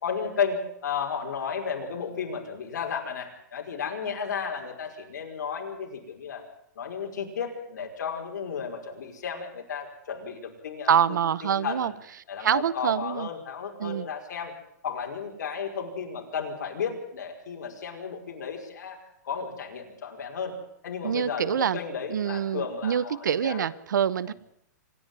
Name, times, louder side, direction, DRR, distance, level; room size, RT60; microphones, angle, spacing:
voice 1, 0.0-6.4 6.8-10.9 11.4-11.9 12.3-14.5 14.8-19.0 19.2-20.6 20.8-23.7 24.3-24.4, left 6 dB, 70° left, 1 dB, 5.4 m, -33 dB
voice 2, 10.9-11.9 12.4-13.3 13.8-14.1 21.0-21.8 22.1-24.3, right 8 dB, 90° right, 20 dB, 1.0 m, -25 dB
26.0 x 10.5 x 9.4 m, 0.73 s
hypercardioid pair, 165°, 10 cm